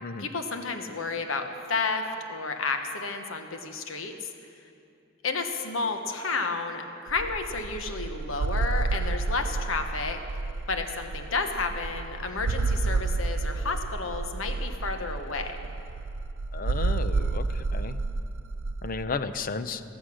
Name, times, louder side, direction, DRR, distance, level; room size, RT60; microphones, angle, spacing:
voice 1, 0.2-4.3 5.2-10.2 10.7-15.7, left 4 dB, 85° left, 6 dB, 1.2 m, -31 dB
sound 1, 7.1-19.0, right 3 dB, 85° right, 0.5 m, -30 dB
voice 2, 16.5-18.0 18.8-19.8, left 4 dB, 45° left, 12 dB, 0.6 m, -33 dB
15.0 x 14.5 x 6.4 m, 2.6 s
head